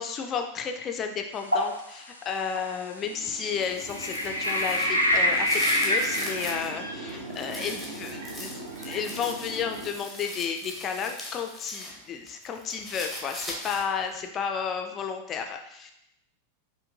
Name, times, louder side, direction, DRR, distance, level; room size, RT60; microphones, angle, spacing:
voice 1, 0.0-15.9, left 6 dB, 30° left, 5 dB, 0.4 m, -32 dB
sound 1, 1.5-1.8 2.5-2.6 3.9-6.6, left 1 dB, 90° left, 0.5 m, -25 dB
sound 2, 3.0-9.9, right 2 dB, 55° right, 0.7 m, -40 dB
sound 3, 3.5-6.7 7.1-11.9 12.3-14.0, left 1 dB, 5° right, 0.8 m, -40 dB
4.9 x 2.6 x 2.8 m, 0.78 s
figure-of-eight pair, 90°, 0 cm